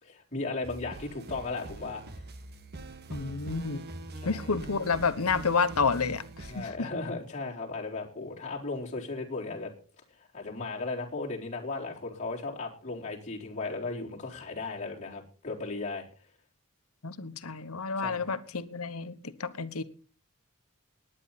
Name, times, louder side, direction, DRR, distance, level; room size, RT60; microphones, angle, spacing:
voice 1, 0.0-2.0 4.2-4.5 6.5-9.7 10.3-16.0 18.0-18.3, left 3 dB, 35° left, 4.0 m, -36 dB
sound 1, 0.6-6.7, right 2 dB, 50° right, 1.6 m, -43 dB
voice 2, 3.1-3.8 4.2-6.9 17.0-19.8, left 5 dB, 85° left, 1.1 m, -30 dB
19.5 x 9.9 x 4.2 m
head